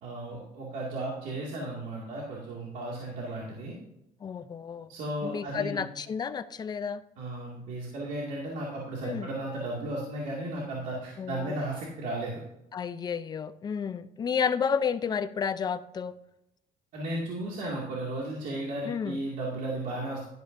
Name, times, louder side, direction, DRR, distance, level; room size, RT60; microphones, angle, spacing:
voice 1, 0.0-3.8 4.9-5.8 7.2-12.4 16.9-20.3, right 1 dB, 70° right, -4 dB, 2.3 m, -35 dB
voice 2, 4.2-4.9 5.2-7.0 9.0-9.3 11.2-11.5 12.7-16.1 18.9-19.2, left 6 dB, 30° left, 12 dB, 0.5 m, -31 dB
12.5 x 11.0 x 2.7 m, 0.86 s
cardioid pair, 155°, 14 cm